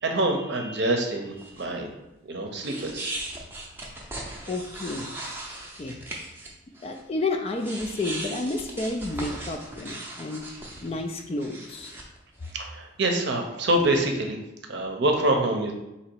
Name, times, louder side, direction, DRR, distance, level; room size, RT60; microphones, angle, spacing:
voice 1, 0.0-1.9 2.3-3.1 12.5-14.4 14.7-15.7, right 1 dB, 55° right, 3 dB, 0.7 m, -25 dB
sound 1, 1.4-1.6 2.6-6.5 6.7-7.0 7.5-12.6, right 2 dB, 10° right, 0.6 m, -38 dB
voice 2, 4.5-5.1 5.8-6.0 6.8-10.4 10.8-11.9, left 2 dB, 30° left, 4 dB, 0.3 m, -30 dB
4.0 x 2.9 x 4.5 m, 0.97 s
head